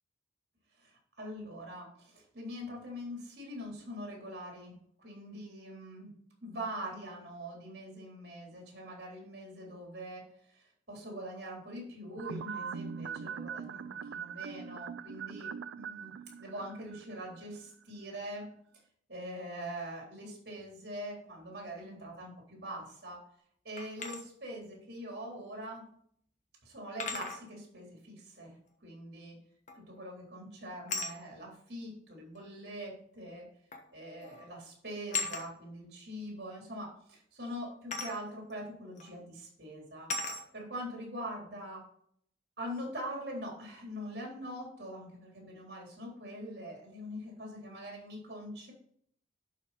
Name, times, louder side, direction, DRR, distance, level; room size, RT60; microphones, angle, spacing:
voice 1, 0.8-18.5 19.1-23.2 23.6-25.8 26.6-29.4 29.7-33.5 33.9-40.1 40.5-41.8 42.6-48.7, equal, 55° right, -1 dB, 3.8 m, -43 dB
sound 1, 12.2-17.6 17.8-17.9, right 6 dB, 85° right, 0.4 m, -42 dB
sound 2, 23.8-24.2 25.7-25.8 27.0-27.4 29.7-30.0 30.9-31.2 32.4-32.5 33.7-33.9 34.2-34.5 35.1-35.5 37.9-38.2 39.0-39.1 40.1-40.4, left 3 dB, 40° left, 1.3 m, -36 dB
11.0 x 4.9 x 4.2 m, 0.65 s
head